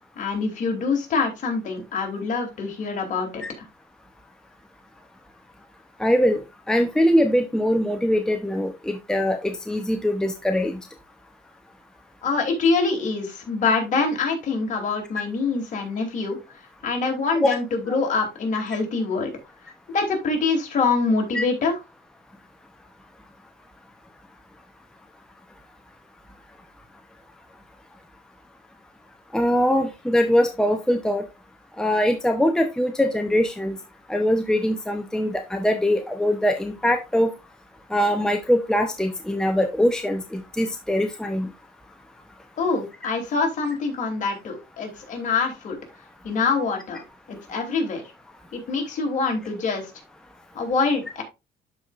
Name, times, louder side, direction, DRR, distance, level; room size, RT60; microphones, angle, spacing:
voice 1, 0.2-3.4 12.2-16.4 16.8-19.3 19.9-21.8 42.6-45.8 46.2-47.0 47.3-48.0 48.5-49.9 50.5-51.2, left 4 dB, 50° left, 2 dB, 3.0 m, -25 dB
voice 2, 6.0-6.4 6.7-10.8 17.4-17.5 17.9-18.0 21.3-21.4 29.3-31.2 31.8-33.8 34.1-37.3 37.9-41.5, equal, 5° left, 5 dB, 0.8 m, -22 dB
12.0 x 4.8 x 2.5 m, 0.25 s
cardioid pair, 110°, 17 cm